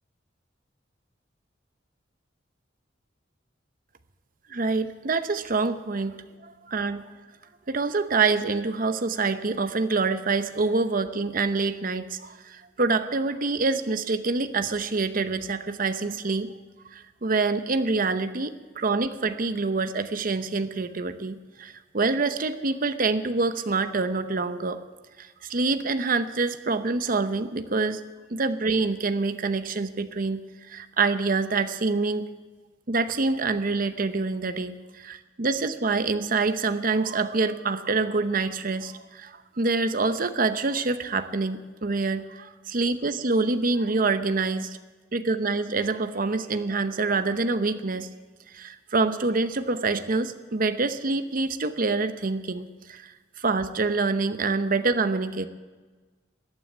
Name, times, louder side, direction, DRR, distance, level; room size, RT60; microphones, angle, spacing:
voice 1, 4.5-6.2 6.4-7.0 7.7-16.5 16.9-24.8 25.2-28.0 28.3-30.4 30.7-32.3 32.9-44.8 45.1-48.1 48.5-53.1 53.4-55.5, right 3 dB, 50° right, 10 dB, 0.8 m, -26 dB
14.0 x 9.4 x 9.5 m, 1.3 s
head